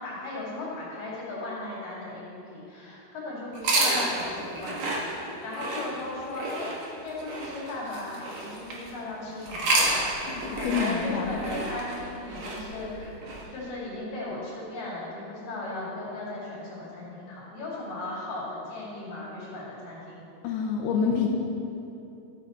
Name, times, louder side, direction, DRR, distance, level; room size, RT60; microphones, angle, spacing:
voice 1, 0.0-13.1 13.5-20.2, left 2 dB, 60° left, -7 dB, 4.0 m, -37 dB
sound 1, 3.5-8.9 9.4-13.4, right 2 dB, 85° right, 1.2 m, -30 dB
voice 2, 10.3-11.4 20.4-21.3, left 6 dB, 85° left, 0 dB, 2.7 m, -27 dB
12.5 x 7.1 x 4.2 m, 2.8 s
omnidirectional pair, 4.6 m